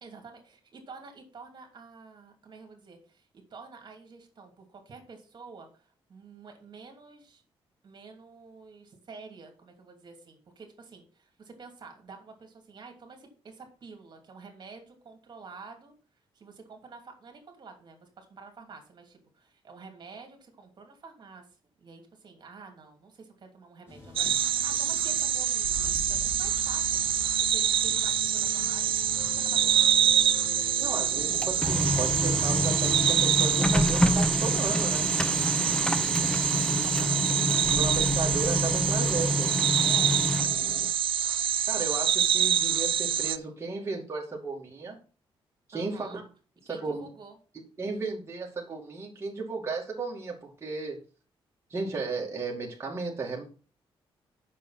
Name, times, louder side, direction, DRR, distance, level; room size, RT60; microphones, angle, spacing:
voice 1, 0.0-7.4 7.8-15.9 16.3-21.5 21.8-27.0 27.5-30.0 35.2-35.6 36.7-37.4 39.8-40.2 45.7-46.2 46.7-47.3, right 4 dB, 50° right, 3 dB, 2.7 m, -49 dB
sound 1, 23.9-39.3, left 1 dB, 25° left, 3.6 m, -42 dB
sound 2, 24.2-43.4, right 9 dB, 65° right, 0.6 m, -26 dB
voice 2, 30.8-35.1 36.5-37.2 37.7-39.5 41.7-45.0 45.7-46.2 46.6-47.1 47.8-51.0 51.7-53.4, right 3 dB, 25° right, -2 dB, 2.4 m, -35 dB
Printer, 31.1-40.9, left 1 dB, 10° left, 0.8 m, -28 dB
7.4 x 6.5 x 5.8 m, 0.38 s
cardioid pair, 105°, 10 cm